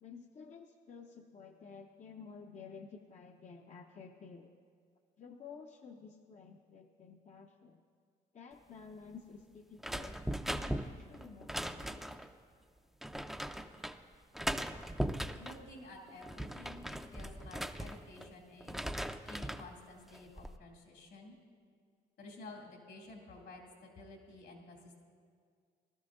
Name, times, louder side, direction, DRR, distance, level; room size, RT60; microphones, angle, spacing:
voice 1, 0.0-4.5 5.2-7.8 8.3-10.2 10.4-12.1, left 5 dB, 40° left, 3 dB, 0.6 m, -52 dB
sound 1, 9.8-12.3 13.0-14.0 14.4-15.6 16.1-18.3 18.6-19.7 20.1-20.6, equal, ahead, 0.5 m, -39 dB
voice 2, 15.4-18.8 19.3-21.4 22.2-25.0, left 2 dB, 75° left, 0 dB, 2.5 m, -52 dB
18.5 x 12.5 x 2.6 m, 2.1 s
supercardioid pair, 65°, 19 cm